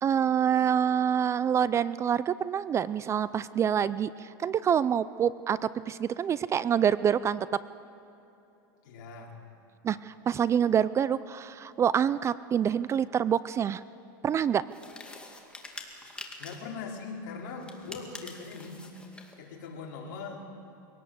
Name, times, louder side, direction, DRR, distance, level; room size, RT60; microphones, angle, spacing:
voice 1, 0.0-7.5 9.8-13.8 14.2-14.6, right 8 dB, 25° right, 17 dB, 0.4 m, -26 dB
voice 2, 8.8-9.4 16.4-18.9 19.4-20.4, left 4 dB, 60° left, -1 dB, 4.5 m, -41 dB
sound 1, 14.7-16.7 17.6-19.4, left 2 dB, 10° left, 2.3 m, -45 dB
23.0 x 18.0 x 7.9 m, 2.9 s
supercardioid pair, 125°, 11 cm